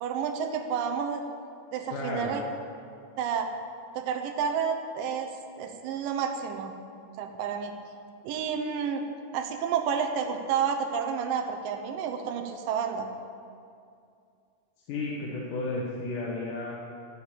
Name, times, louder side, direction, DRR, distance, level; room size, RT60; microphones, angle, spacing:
voice 1, 0.0-1.2 1.7-2.4 3.2-3.5 4.0-5.3 5.6-6.8 7.2-7.7 8.2-9.0 9.3-13.1, right 7 dB, 90° right, 5 dB, 2.6 m, -30 dB
voice 2, 1.9-2.4 14.9-16.7, left 2 dB, 75° left, -4 dB, 2.8 m, -33 dB
15.0 x 5.1 x 8.5 m, 2.4 s
omnidirectional pair, 3.8 m